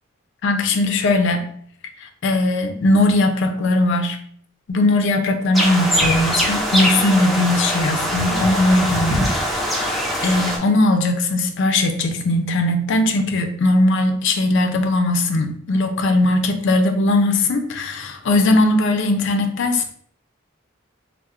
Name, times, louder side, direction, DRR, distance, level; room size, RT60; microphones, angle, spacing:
voice 1, 0.4-1.4 2.0-4.2 4.7-9.3 9.7-19.9, left 2 dB, 60° left, 6 dB, 0.4 m, -19 dB
sound 1, 5.5-10.6, equal, ahead, 0.4 m, -22 dB
4.2 x 2.0 x 2.3 m, 0.62 s
head